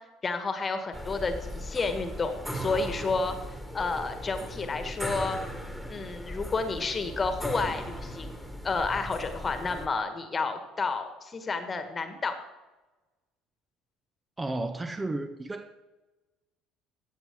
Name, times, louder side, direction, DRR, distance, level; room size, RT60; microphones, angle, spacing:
voice 1, 0.2-5.4 5.9-8.4 8.6-12.3, left 4 dB, 25° left, 8 dB, 1.4 m, -31 dB
sound 1, 0.9-9.9, equal, ahead, 1.6 m, -38 dB
voice 2, 14.4-15.8, right 2 dB, 15° right, 8 dB, 0.7 m, -33 dB
15.5 x 8.0 x 3.6 m, 1.1 s
figure-of-eight pair, 60°, 0 cm